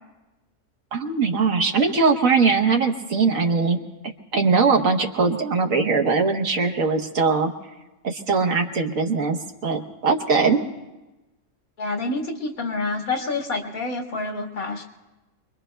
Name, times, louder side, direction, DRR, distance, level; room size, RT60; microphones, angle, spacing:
voice 1, 0.9-3.8 4.3-7.5 8.0-10.6, right 4 dB, 70° right, 3 dB, 1.5 m, -21 dB
voice 2, 11.8-14.8, left 3 dB, 85° left, 1 dB, 2.1 m, -28 dB
27.5 x 22.0 x 2.3 m, 1.1 s
omnidirectional pair, 1.5 m